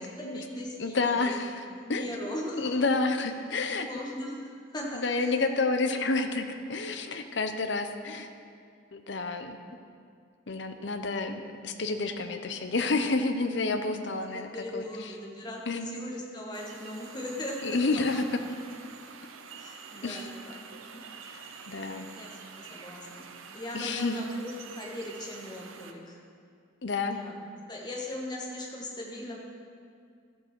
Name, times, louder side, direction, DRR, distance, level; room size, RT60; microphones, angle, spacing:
voice 1, 0.0-1.3 1.7-2.9 3.9-5.3 14.1-18.2 19.6-20.6 20.9-21.4 22.1-23.3 23.5-26.2 26.9-27.4 27.7-29.4, left 1 dB, 20° left, -2 dB, 1.6 m, -39 dB
voice 2, 0.8-1.5 1.9-2.0 2.5-3.9 4.9-8.3 8.9-9.6 10.5-14.9 15.7-15.9 17.6-18.2 20.0-20.3 21.7-22.1 23.7-24.2 26.8-27.2, left 3 dB, 60° left, 7 dB, 0.8 m, -29 dB
sound 1, 16.5-25.9, right 5 dB, 90° right, 0.8 m, -47 dB
12.5 x 7.3 x 6.0 m, 2.3 s
head